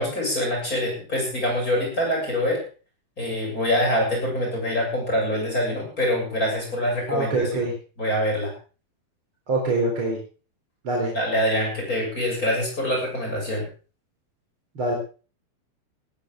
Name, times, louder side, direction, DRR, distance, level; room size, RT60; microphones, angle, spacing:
voice 1, 0.0-2.6 3.2-7.5 8.0-8.5 11.1-13.6, equal, 20° left, -1 dB, 7.7 m, -25 dB
voice 2, 7.1-7.7 9.5-10.2 10.8-11.1 14.8-15.0, right 2 dB, 35° right, -1 dB, 4.3 m, -24 dB
18.5 x 14.5 x 3.8 m, 0.36 s
omnidirectional pair, 4.4 m